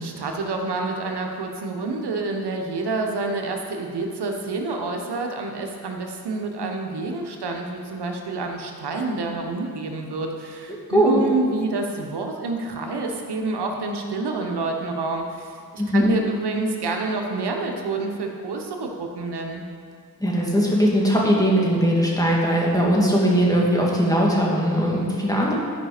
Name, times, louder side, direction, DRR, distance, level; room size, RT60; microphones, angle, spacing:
voice 1, 0.0-19.6, right 3 dB, 85° right, 2 dB, 1.1 m, -28 dB
voice 2, 10.9-11.2 15.8-16.1 20.2-25.5, equal, 10° left, -4 dB, 2.4 m, -20 dB
12.0 x 5.0 x 5.1 m, 2.2 s
cardioid pair, 45°, 39 cm